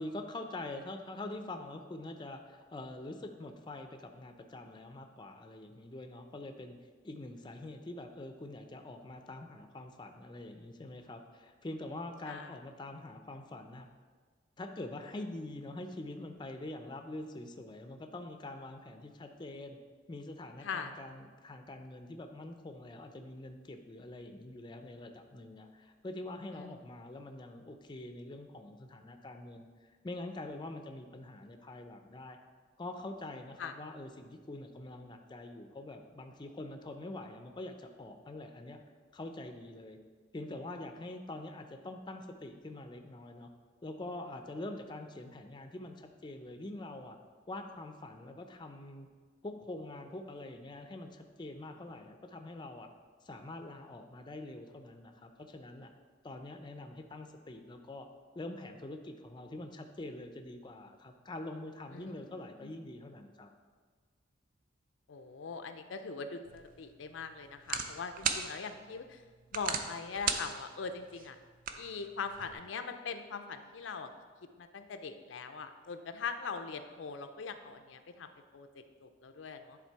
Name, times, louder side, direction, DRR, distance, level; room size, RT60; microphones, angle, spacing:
voice 1, 0.0-6.8 7.0-13.9 14.6-19.8 20.1-32.4 32.8-38.8 39.1-40.0 40.3-43.5 43.8-47.2 47.5-49.1 49.4-52.9 53.2-55.9 56.2-58.1 58.4-63.5, left 2 dB, 25° left, 6 dB, 0.5 m, -45 dB
voice 2, 12.2-12.6 20.6-20.9 26.5-26.8 33.6-33.7 61.9-62.7 65.1-69.2 69.5-71.4 71.8-74.1 74.6-79.8, left 5 dB, 90° left, 8 dB, 0.5 m, -41 dB
sound 1, 66.5-72.5, right 6 dB, 45° right, 0.5 m, -39 dB
10.0 x 3.7 x 4.6 m, 1.5 s
head